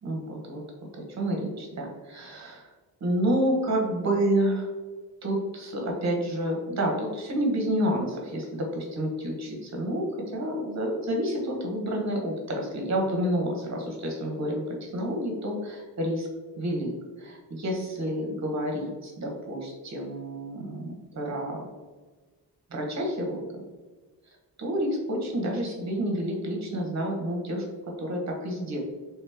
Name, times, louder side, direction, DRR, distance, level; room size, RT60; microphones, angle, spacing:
voice 1, 0.0-0.6 0.9-2.7 3.0-4.7 5.2-10.0 10.3-16.3 16.6-16.9 17.2-21.6 22.7-23.4 24.6-27.7 28.0-28.8, right 1 dB, 40° right, 0 dB, 0.9 m, -29 dB
3.3 x 3.0 x 3.4 m, 1.3 s
wide cardioid pair, 130°, 41 cm